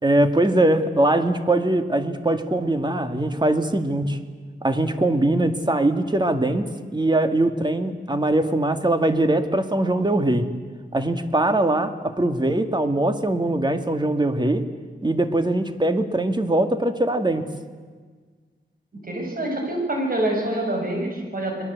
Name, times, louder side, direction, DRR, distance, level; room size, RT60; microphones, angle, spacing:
voice 1, 0.0-4.2 4.6-10.5 10.9-14.7 15.0-17.5, right 1 dB, 25° right, 8 dB, 2.2 m, -21 dB
voice 2, 19.1-21.6, right 1 dB, 50° right, 1 dB, 7.4 m, -26 dB
30.0 x 21.5 x 8.3 m, 1.5 s
wide cardioid pair, 70°, 19 cm